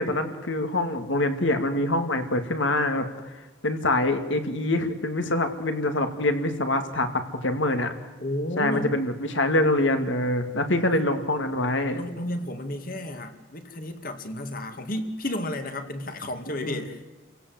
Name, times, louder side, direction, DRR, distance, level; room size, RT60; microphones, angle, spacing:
voice 1, 0.0-3.1 3.6-7.1 7.4-7.9 8.6-12.0 16.5-16.8, left 1 dB, 65° left, 7 dB, 2.4 m, -25 dB
voice 2, 8.2-8.9 10.6-11.0 11.9-17.0, left 1 dB, 45° left, 7 dB, 2.1 m, -32 dB
29.0 x 16.5 x 7.9 m, 1.3 s
head